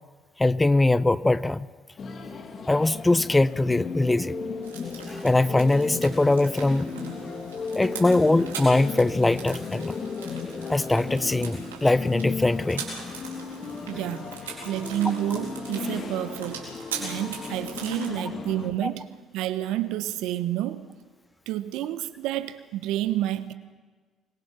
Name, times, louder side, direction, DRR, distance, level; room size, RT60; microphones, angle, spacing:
voice 1, 0.4-1.7 2.7-4.4 5.1-6.9 7.7-10.0 10.7-12.8 18.8-18.9, left 2 dB, 15° left, 0.8 m, -22 dB
sound 1, 2.0-18.7, left 5 dB, 50° left, 3.0 m, -35 dB
sound 2, 4.6-18.1, right 6 dB, 90° right, 4.2 m, -41 dB
voice 2, 13.9-14.3 14.6-16.7 17.0-20.9 21.5-23.5, right 13 dB, 70° right, 1.1 m, -29 dB
26.0 x 21.5 x 5.9 m
hypercardioid pair, 50°, 0 cm